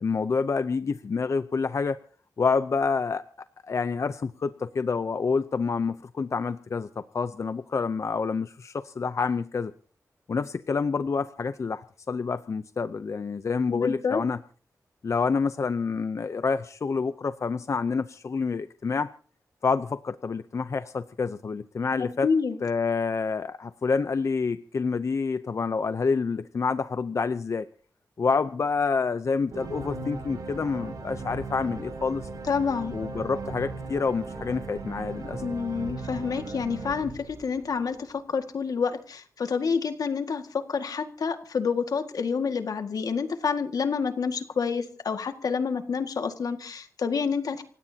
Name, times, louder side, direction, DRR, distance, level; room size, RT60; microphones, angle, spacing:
voice 1, 0.0-2.0 2.4-3.2 3.6-6.9 7.1-9.7 10.3-14.4 15.0-19.1 19.6-22.3 22.6-27.7 28.2-32.3 32.9-35.4, left 5 dB, 50° left, 12 dB, 0.7 m, -28 dB
voice 2, 13.7-14.2 22.2-22.6 32.5-32.9 35.4-47.6, left 5 dB, 75° left, 7 dB, 1.9 m, -28 dB
sound 1, 29.5-37.9, right 3 dB, 85° right, 6.5 m, -37 dB
29.0 x 16.5 x 2.9 m, 0.43 s
wide cardioid pair, 115°, 6 cm